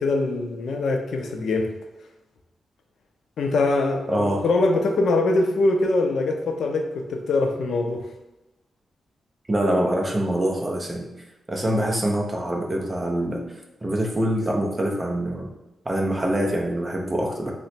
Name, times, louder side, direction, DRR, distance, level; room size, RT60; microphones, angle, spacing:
voice 1, 0.0-1.7 3.4-8.1, left 2 dB, 65° left, 4 dB, 0.4 m, -23 dB
voice 2, 4.1-4.4 9.5-11.1 11.5-13.4 13.8-15.5 15.9-17.5, right 1 dB, 15° right, 0 dB, 0.4 m, -24 dB
2.8 x 2.1 x 4.1 m, 1.0 s
wide cardioid pair, 180°, 0 cm